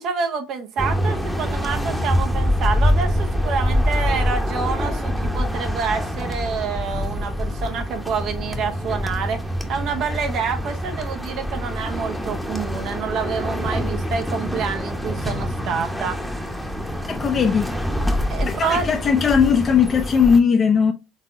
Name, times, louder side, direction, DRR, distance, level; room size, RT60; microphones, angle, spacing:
voice 1, 0.0-9.4 9.7-16.2 18.3-18.8, right 6 dB, 55° right, 0.7 m, -27 dB
sound 1, 0.8-20.4, equal, ahead, 0.9 m, -25 dB
voice 2, 17.0-17.7 18.5-20.9, left 6 dB, 35° left, 0.5 m, -18 dB
4.1 x 3.6 x 2.5 m
hypercardioid pair, 65°, 0 cm